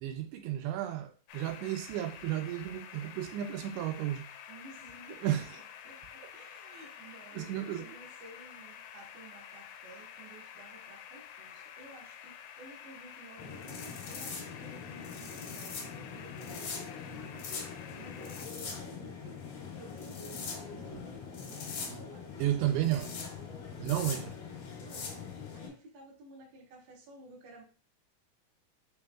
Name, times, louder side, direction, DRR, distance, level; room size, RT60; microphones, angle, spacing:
voice 1, 0.0-4.3 5.2-5.4 7.4-7.8 21.9-22.0 22.4-23.1 23.8-24.2, right 12 dB, 85° right, 2.7 m, -32 dB
sound 1, 1.3-18.4, left 9 dB, 85° left, 2.8 m, -49 dB
voice 2, 4.5-5.5 5.8-19.4 19.7-22.9 23.9-24.3 24.8-25.2 25.5-27.6, right 2 dB, 55° right, 1.2 m, -54 dB
sound 2, 13.4-25.7, left 5 dB, 65° left, 2.4 m, -42 dB
6.1 x 3.4 x 2.3 m
omnidirectional pair, 5.0 m